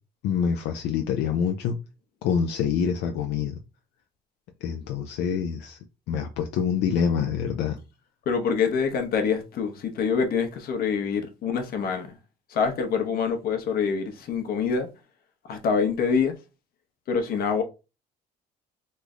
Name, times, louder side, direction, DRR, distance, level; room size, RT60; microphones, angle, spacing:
voice 1, 0.2-1.8 2.2-3.6 4.6-5.8 6.1-7.8, left 7 dB, 85° left, 0.4 m, -26 dB
voice 2, 8.3-12.1 12.5-14.9 15.5-16.4 17.1-17.6, left 6 dB, 60° left, 0.8 m, -25 dB
3.2 x 2.1 x 3.6 m
cardioid pair, 110°, 17 cm